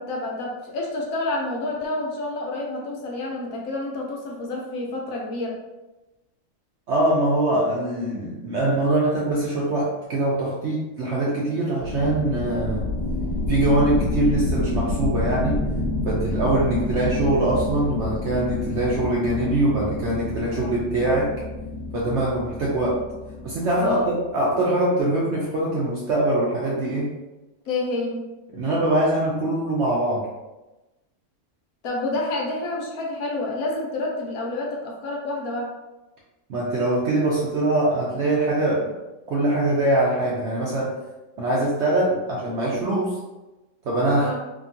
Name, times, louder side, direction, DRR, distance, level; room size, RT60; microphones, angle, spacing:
voice 1, 0.0-5.6 23.8-24.1 27.7-28.3 31.8-35.7 44.2-44.4, left 2 dB, 70° left, -1 dB, 1.0 m, -28 dB
voice 2, 6.9-12.9 13.5-15.6 16.1-21.4 21.9-23.0 23.4-27.2 28.5-30.3 36.5-38.9 39.3-41.0 41.4-43.2 43.8-44.3, right 1 dB, 65° right, -4 dB, 0.7 m, -23 dB
sound 1, 11.8-24.1, left 2 dB, 30° right, 1.1 m, -28 dB
2.8 x 2.3 x 2.6 m, 1.1 s
omnidirectional pair, 1.6 m